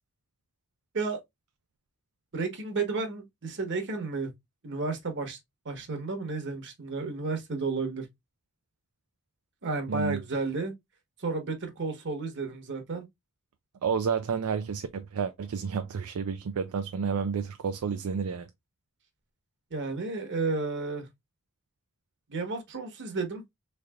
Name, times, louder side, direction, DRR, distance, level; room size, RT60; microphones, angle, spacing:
voice 1, 2.3-4.3 4.6-5.4 5.6-8.1 9.6-10.7 11.2-13.0 19.7-21.1 22.3-23.4, right 3 dB, 55° right, 1.1 m, -32 dB
voice 2, 9.9-10.2 13.8-18.5, right 6 dB, 75° right, 0.4 m, -30 dB
3.7 x 3.2 x 2.2 m
head